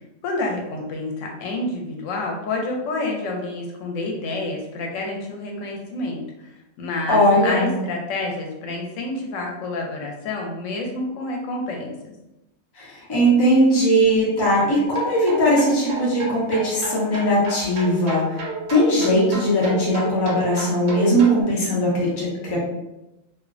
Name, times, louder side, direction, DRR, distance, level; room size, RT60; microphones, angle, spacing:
voice 1, 0.2-6.5 6.8-12.1, left 2 dB, 90° left, 0 dB, 0.9 m, -28 dB
voice 2, 7.1-7.7 12.8-18.4 18.7-22.6, equal, 25° left, -6 dB, 0.6 m, -19 dB
sound 1, 14.8-21.4, right 3 dB, 90° right, 1.0 m, -32 dB
2.4 x 2.1 x 2.4 m, 0.93 s
omnidirectional pair, 1.3 m